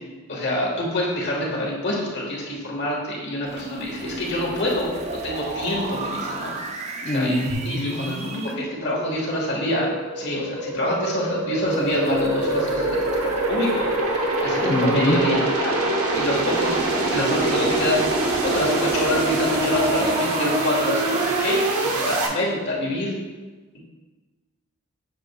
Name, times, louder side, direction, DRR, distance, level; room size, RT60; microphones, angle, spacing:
voice 1, 0.3-4.9 5.2-6.5 7.1-9.9 10.2-23.1, left 1 dB, 50° left, -2 dB, 1.4 m, -26 dB
sound 1, 3.5-8.5 11.7-15.4 16.1-21.9, right 2 dB, 30° right, 0.5 m, -34 dB
voice 2, 7.0-7.5 14.6-15.2, left 1 dB, 25° left, -4 dB, 0.5 m, -23 dB
sound 2, 7.5-22.3, right 2 dB, 85° right, 1.0 m, -25 dB
7.6 x 6.6 x 2.2 m, 1.3 s
head